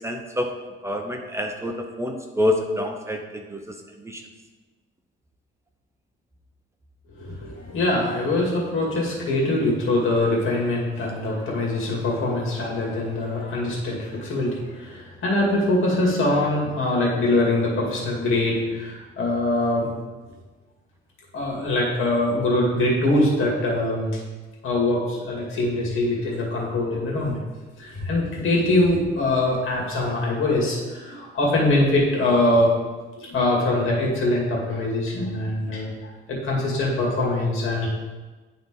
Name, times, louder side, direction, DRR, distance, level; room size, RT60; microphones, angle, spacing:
voice 1, 0.0-0.5 0.8-3.6 4.0-4.2, left 1 dB, 15° right, 3 dB, 0.6 m, -27 dB
voice 2, 7.2-19.9 21.3-24.2 24.6-27.4 27.8-32.7 33.2-37.9, left 2 dB, 75° left, -3 dB, 2.2 m, -23 dB
10.5 x 4.0 x 3.7 m, 1.3 s
cardioid pair, 140°, 21 cm